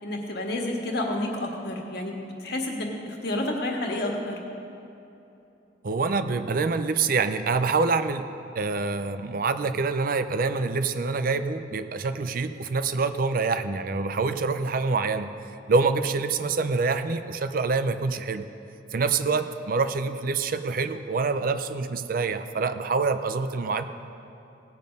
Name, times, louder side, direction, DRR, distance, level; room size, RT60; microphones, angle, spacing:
voice 1, 0.0-2.2 2.4-4.4, left 1 dB, 60° left, 1 dB, 1.6 m, -30 dB
voice 2, 5.8-15.3 15.7-18.5 18.9-23.8, right 4 dB, 50° right, 10 dB, 0.5 m, -26 dB
17.5 x 7.4 x 5.3 m, 2.9 s
head